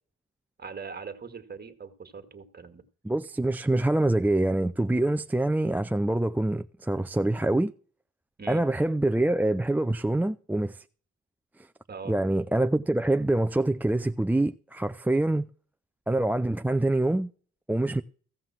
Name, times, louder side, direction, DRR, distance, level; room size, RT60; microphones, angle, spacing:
voice 1, 0.6-2.8 8.4-8.7 11.9-12.2, right 5 dB, 30° right, 2.0 m, -41 dB
voice 2, 3.0-7.7 8.5-10.8 12.1-15.5 16.1-17.3 17.7-18.0, right 1 dB, 5° right, 0.5 m, -25 dB
15.5 x 5.8 x 7.5 m
cardioid pair, 90°, 30 cm